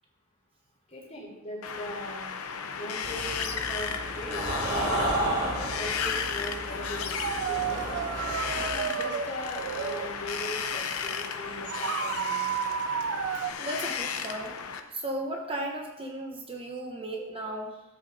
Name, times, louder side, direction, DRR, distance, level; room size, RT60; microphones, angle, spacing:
voice 1, 0.9-2.3 2.7-8.0 8.6-12.4 17.2-17.3, left 1 dB, 35° left, -4 dB, 3.2 m, -39 dB
Wind, 1.6-14.8, left 6 dB, 70° left, 0.7 m, -34 dB
sound 1, 3.0-8.7, right 1 dB, 75° right, 3.2 m, -33 dB
sound 2, 7.2-11.4 11.6-13.5, right 8 dB, 55° right, 0.4 m, -32 dB
voice 2, 13.6-14.6 14.9-17.8, right 1 dB, 25° right, 1 dB, 0.9 m, -35 dB
13.0 x 8.0 x 2.7 m, 0.98 s
head